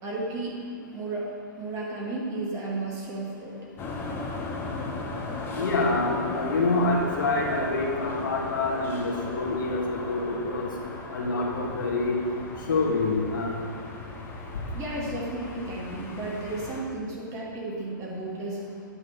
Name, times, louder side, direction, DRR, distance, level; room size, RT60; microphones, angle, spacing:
voice 1, 0.0-0.6 0.9-1.3 1.6-3.5 14.7-18.6, right 2 dB, 30° right, -4 dB, 2.2 m, -33 dB
sound 1, 3.8-16.8, left 3 dB, 20° left, 1.1 m, -37 dB
voice 2, 5.5-10.7 11.1-12.2 12.7-13.5, left 2 dB, 70° left, -1 dB, 1.8 m, -26 dB
8.7 x 4.7 x 5.9 m, 2.1 s
hypercardioid pair, 125°, 11 cm